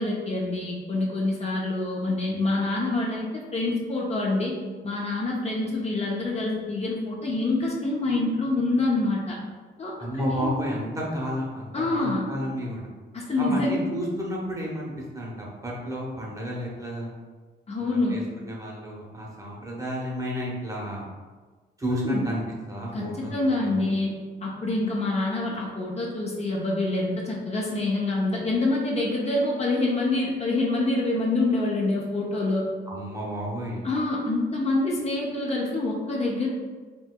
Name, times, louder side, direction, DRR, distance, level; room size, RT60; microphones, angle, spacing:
voice 1, 0.0-4.5 4.8-9.4 9.8-10.5 11.7-12.3 13.1-13.8 17.7-18.2 22.0-22.2 22.9-24.1 24.4-32.7 33.8-36.5, left 2 dB, 30° left, -3 dB, 0.7 m, -26 dB
voice 2, 10.0-12.9 13.4-17.1 17.8-21.1 21.8-22.4 22.7-24.1 32.9-33.8, equal, 15° right, -4 dB, 0.9 m, -32 dB
4.4 x 2.6 x 2.2 m, 1.4 s
cardioid pair, 90°, 20 cm